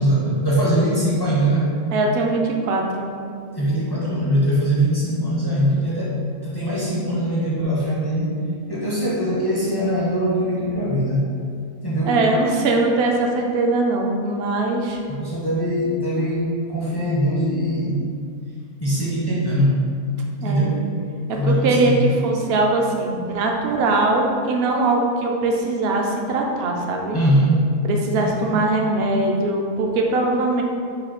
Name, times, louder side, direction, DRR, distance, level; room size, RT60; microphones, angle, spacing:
voice 1, 0.0-1.7 3.5-8.3 8.7-11.4 11.8-12.2 15.1-18.1 18.8-19.8 20.4-20.9 21.4-22.1 27.1-27.6 28.1-28.6, right 1 dB, 30° left, -7 dB, 0.5 m, -21 dB
voice 2, 1.9-3.1 12.1-15.0 20.4-20.7 21.3-27.2 27.8-30.6, right 2 dB, 60° right, 1 dB, 0.7 m, -21 dB
4.9 x 2.3 x 4.3 m, 2.3 s
omnidirectional pair, 1.4 m